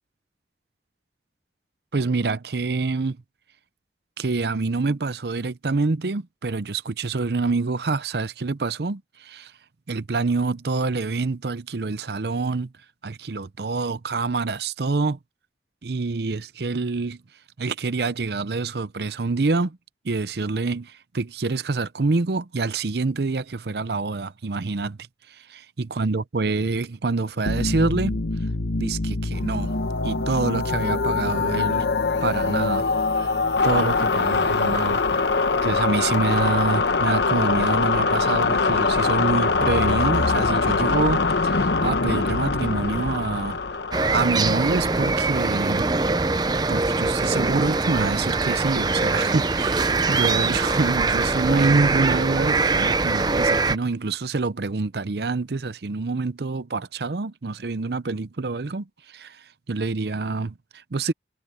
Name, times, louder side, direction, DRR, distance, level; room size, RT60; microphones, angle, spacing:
voice 1, 1.9-3.2 4.2-9.5 9.9-12.7 13.0-15.2 15.8-17.2 17.6-19.8 20.0-25.0 25.3-28.2 28.8-29.8 30.0-31.9 32.2-32.9 33.2-33.3 33.6-35.0 35.6-43.6 44.1-45.9 46.7-61.1, right 3 dB, 65° right, 0.7 m, -26 dB
sound 1, 27.5-45.9, left 4 dB, 80° left, 1.0 m, -23 dB
sound 2, 43.9-53.8, right 3 dB, 25° right, 0.6 m, -22 dB
head